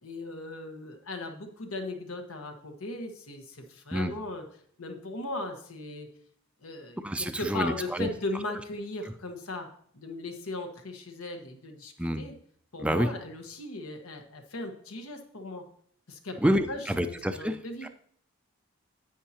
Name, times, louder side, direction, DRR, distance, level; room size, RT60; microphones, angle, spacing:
voice 1, 0.0-4.4 4.8-6.1 6.6-9.7 9.9-12.3 12.7-15.6 16.1-16.4 16.7-17.9, left 2 dB, 85° left, 5 dB, 1.3 m, -38 dB
voice 2, 7.0-8.1 12.0-12.2 12.8-13.1 16.4-17.9, equal, 5° right, 8 dB, 0.4 m, -28 dB
10.0 x 7.9 x 2.8 m, 0.63 s
head